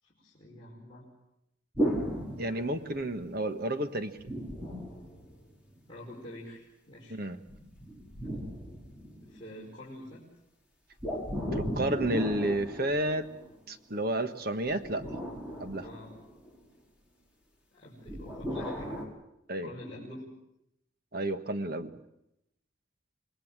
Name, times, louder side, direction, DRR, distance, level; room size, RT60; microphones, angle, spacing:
voice 1, 0.0-1.0 2.5-3.0 5.9-7.2 9.2-10.2 15.8-16.1 17.7-19.1 19.6-20.3, left 1 dB, 25° left, -7 dB, 5.4 m, -47 dB
sound 1, 1.7-3.2 4.2-5.8 7.5-9.5 11.0-13.6 14.7-16.6 18.1-19.0, equal, 5° right, 4.4 m, -36 dB
voice 2, 2.4-4.1 7.1-7.4 11.5-13.3 13.7-15.0 15.6-15.8 19.5-19.7 21.1-21.9, right 1 dB, 50° right, 9 dB, 1.5 m, -31 dB
27.0 x 20.5 x 7.5 m, 0.83 s
head